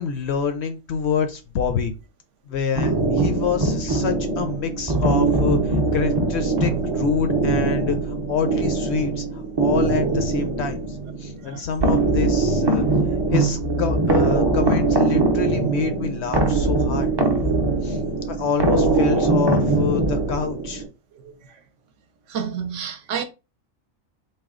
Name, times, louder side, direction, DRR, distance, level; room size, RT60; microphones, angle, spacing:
voice 1, 0.0-1.9 2.5-12.8 13.3-17.1 17.8-18.0 18.3-20.8, left 6 dB, 65° left, 0.7 m, -27 dB
sound 1, 2.8-20.9, right 3 dB, 35° right, 0.4 m, -21 dB
voice 2, 22.3-23.2, right 7 dB, 70° right, 0.9 m, -29 dB
4.2 x 2.2 x 3.6 m
omnidirectional pair, 1.4 m